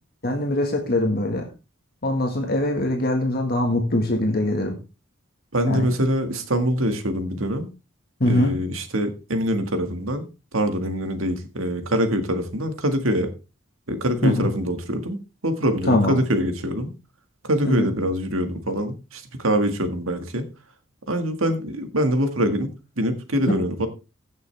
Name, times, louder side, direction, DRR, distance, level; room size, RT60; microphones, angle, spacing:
voice 1, 0.2-1.5 2.0-4.8 5.7-5.9 8.2-8.5 14.2-14.5 15.9-16.2 17.6-17.9, left 1 dB, 50° left, 2 dB, 1.7 m, -22 dB
voice 2, 5.5-7.7 8.3-10.3 10.5-13.3 13.9-16.9 17.4-20.4 21.1-22.7 23.0-23.9, equal, 80° right, 7 dB, 1.8 m, -24 dB
15.5 x 6.6 x 3.4 m, 0.29 s
head